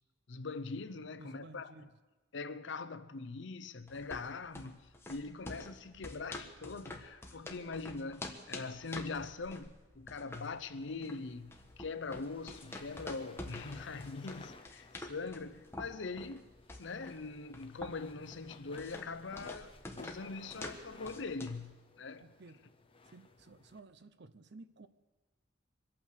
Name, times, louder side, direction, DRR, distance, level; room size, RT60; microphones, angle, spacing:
voice 1, 0.3-1.7 2.3-4.8 5.1-16.5 16.8-22.2, left 4 dB, 65° left, 0.7 m, -42 dB
voice 2, 1.2-1.9 22.2-22.7 23.0-24.9, right 3 dB, 60° right, 0.8 m, -54 dB
sound 1, 3.9-21.7, left 1 dB, 15° left, 1.4 m, -48 dB
sound 2, 11.0-23.8, left 3 dB, 30° left, 1.0 m, -58 dB
24.5 x 8.9 x 6.5 m
head